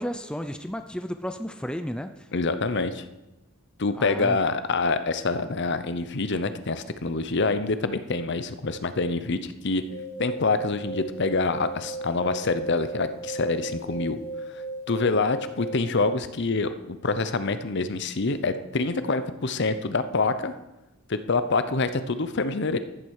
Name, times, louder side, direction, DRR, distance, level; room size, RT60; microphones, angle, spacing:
voice 1, 0.0-2.3 3.9-4.4, equal, 5° left, 8 dB, 0.5 m, -33 dB
voice 2, 2.3-3.1 3.8-9.8 10.2-14.2 14.5-14.6 14.9-20.6 21.1-22.8, left 3 dB, 55° left, 11 dB, 0.8 m, -26 dB
sound 1, 9.8-15.8, right 2 dB, 90° left, 5.1 m, -36 dB
14.0 x 7.6 x 6.5 m, 1.0 s
head